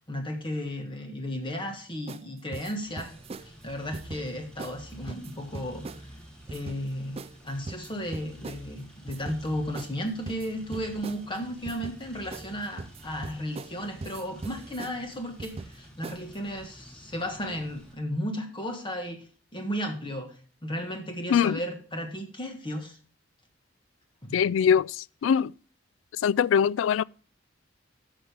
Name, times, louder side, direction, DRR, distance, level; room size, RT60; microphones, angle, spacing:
voice 1, 0.1-6.1 6.5-19.3 19.5-20.3 20.6-23.0 24.2-24.4, equal, 25° left, 1.4 m, -34 dB
sound 1, 2.1-2.3 2.5-3.5 3.9-4.2 4.6-4.8 5.1-6.0 6.5-6.8 7.2-7.4 7.7-8.6 9.1-9.4 9.8-9.9 10.3-11.2 11.7-12.0 12.3-12.5 12.8-13.8 14.0-15.0 15.4-15.8 16.0-16.4, right 3 dB, 30° right, 0.4 m, -40 dB
sound 2, 2.8-17.9, right 1 dB, 5° left, 3.3 m, -49 dB
voice 2, 24.3-24.9 25.2-25.5 26.2-27.0, left 7 dB, 80° left, 0.3 m, -22 dB
13.0 x 6.3 x 3.3 m
head